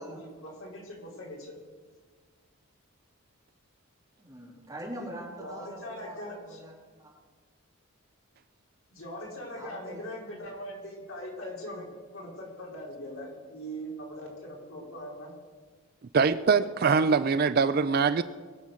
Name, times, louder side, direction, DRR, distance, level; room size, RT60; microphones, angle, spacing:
voice 1, 0.0-1.5 5.4-6.6 8.9-11.9 12.1-15.3, equal, 70° left, -2 dB, 3.8 m, -41 dB
voice 2, 4.2-6.7 9.5-10.0, right 1 dB, 15° right, -3 dB, 3.4 m, -43 dB
voice 3, 16.1-18.2, right 5 dB, 45° right, 14 dB, 0.4 m, -23 dB
21.0 x 7.3 x 6.3 m, 1.5 s
head